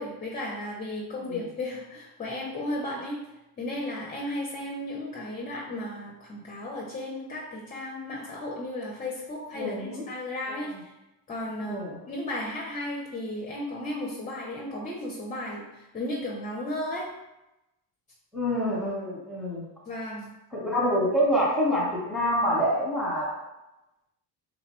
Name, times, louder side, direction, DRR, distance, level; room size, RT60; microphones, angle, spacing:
voice 1, 0.0-3.2 3.6-10.9 11.3-17.1 19.9-20.3, left 1 dB, 20° left, -2 dB, 0.4 m, -34 dB
voice 2, 9.5-10.1 10.7-10.8 11.6-12.0 18.3-19.7 20.5-23.3, equal, ahead, -5 dB, 0.9 m, -26 dB
3.2 x 2.1 x 4.1 m, 0.98 s
cardioid pair, 120°, 46 cm